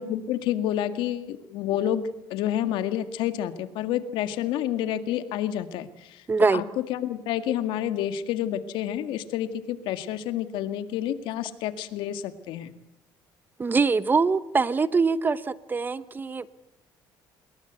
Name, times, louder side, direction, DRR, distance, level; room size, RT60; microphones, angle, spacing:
voice 1, 0.0-2.0 2.3-6.2 6.5-12.7, left 11 dB, 80° left, 10 dB, 2.0 m, -29 dB
voice 2, 6.3-6.6 13.6-16.5, right 4 dB, 25° right, 16 dB, 1.0 m, -23 dB
26.5 x 21.5 x 8.2 m, 0.84 s
cardioid pair, 120°, 8 cm